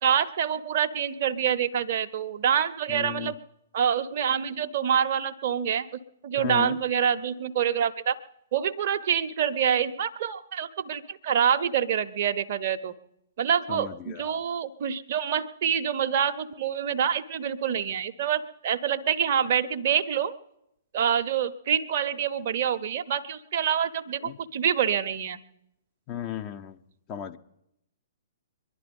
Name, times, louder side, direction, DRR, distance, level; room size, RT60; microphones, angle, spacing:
voice 1, 0.0-3.3 3.7-5.9 6.2-8.2 8.5-12.9 13.4-20.3 20.9-25.4, right 8 dB, 50° right, 8 dB, 0.7 m, -26 dB
voice 2, 2.9-3.3 6.4-6.8 13.7-14.4 24.2-24.4 26.1-26.8 27.1-27.4, left 10 dB, 30° left, 8 dB, 0.8 m, -35 dB
23.5 x 11.0 x 5.3 m, 0.82 s
figure-of-eight pair, 120°, 0 cm